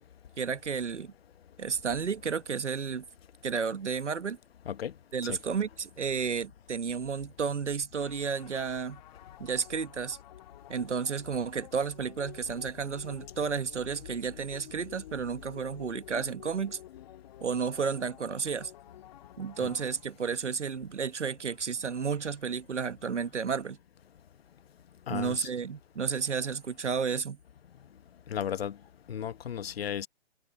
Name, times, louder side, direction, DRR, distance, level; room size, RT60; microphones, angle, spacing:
voice 1, 0.4-1.1 1.6-3.0 3.4-4.4 5.1-9.0 9.4-10.2 10.7-16.8 17.4-18.7 19.4-23.8 25.1-27.4, right 6 dB, 80° right, 1.4 m, -32 dB
sound 1, 8.0-20.5, left 14 dB, 35° left, 2.3 m, -52 dB
voice 2, 25.1-25.5 28.3-28.8 29.1-30.1, left 9 dB, 60° left, 1.2 m, -34 dB
figure-of-eight pair, 140°, 35 cm